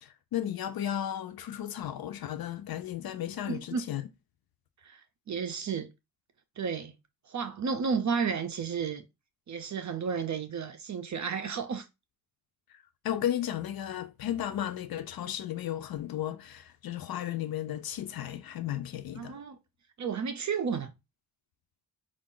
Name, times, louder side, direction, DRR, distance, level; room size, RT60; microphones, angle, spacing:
voice 1, 0.0-4.0 13.0-19.4, left 11 dB, 70° left, 0.5 m, -34 dB
voice 2, 3.4-3.8 4.8-5.9 6.6-6.9 7.3-9.1 9.5-11.9 19.1-19.6 20.0-20.9, right 6 dB, 50° right, 0.6 m, -32 dB
4.9 x 2.4 x 3.7 m
wide cardioid pair, 120°, 38 cm